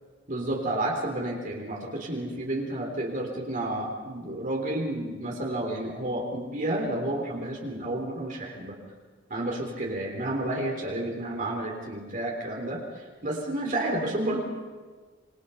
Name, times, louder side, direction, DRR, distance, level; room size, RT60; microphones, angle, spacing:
voice 1, 0.3-8.8 9.3-12.8 13.2-14.4, right 1 dB, 45° right, 0 dB, 3.6 m, -30 dB
27.5 x 22.0 x 5.7 m, 1.4 s
head